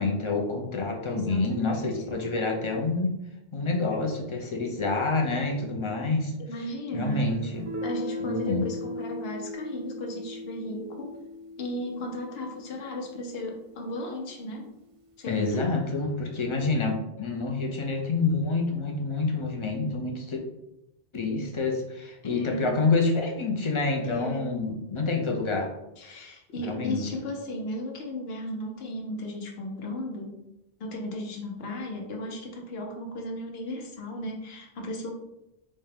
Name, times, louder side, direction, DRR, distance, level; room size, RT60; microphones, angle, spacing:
voice 1, 0.0-3.1 3.5-6.3 6.9-7.6 8.2-8.7 15.3-20.4 21.1-25.7 26.1-26.2 26.7-27.0, left 3 dB, 40° left, 1 dB, 0.5 m, -27 dB
voice 2, 1.1-2.3 6.4-7.3 7.8-11.2 11.6-14.7 15.2-15.7 22.2-22.7 24.0-24.6 26.0-30.4 30.8-35.1, equal, 70° left, 1 dB, 1.0 m, -35 dB
Guitar, 7.6-13.1, left 2 dB, 55° right, 0.4 m, -37 dB
4.2 x 2.3 x 3.3 m, 0.90 s
omnidirectional pair, 1.1 m